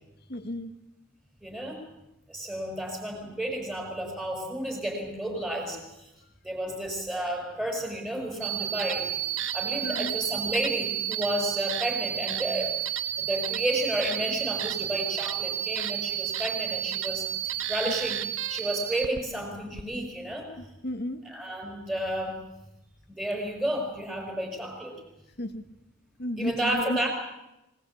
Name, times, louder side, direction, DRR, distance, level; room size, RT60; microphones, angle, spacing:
voice 1, 0.3-0.7 9.8-10.2 20.6-21.2 25.4-25.6 26.2-27.1, left 1 dB, 45° left, 9 dB, 1.7 m, -32 dB
voice 2, 1.4-1.8 2.3-6.1 6.4-18.2 18.5-20.5 21.2-22.4 23.1-24.9 26.4-27.1, right 1 dB, 5° right, 0 dB, 5.0 m, -32 dB
sound 1, 8.4-19.2 19.7-19.8, right 12 dB, 60° right, 1.0 m, -31 dB
25.0 x 19.5 x 8.6 m, 0.95 s
head